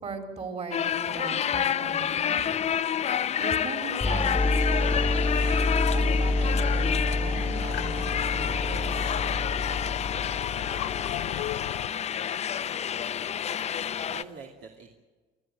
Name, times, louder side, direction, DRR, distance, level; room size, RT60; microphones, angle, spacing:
voice 1, 0.0-2.7 3.4-9.1, right 4 dB, 40° right, 5 dB, 4.1 m, -39 dB
sound 1, 0.7-14.2, left 9 dB, 40° left, 0.6 m, -29 dB
sound 2, 4.0-11.6, left 2 dB, 10° left, 1.4 m, -28 dB
sound 3, 4.9-11.9, left 15 dB, 85° left, 0.6 m, -36 dB
voice 2, 13.1-14.9, right 5 dB, 80° right, 2 dB, 2.6 m, -47 dB
26.5 x 14.5 x 9.0 m, 1.3 s
cardioid pair, 110°, 17 cm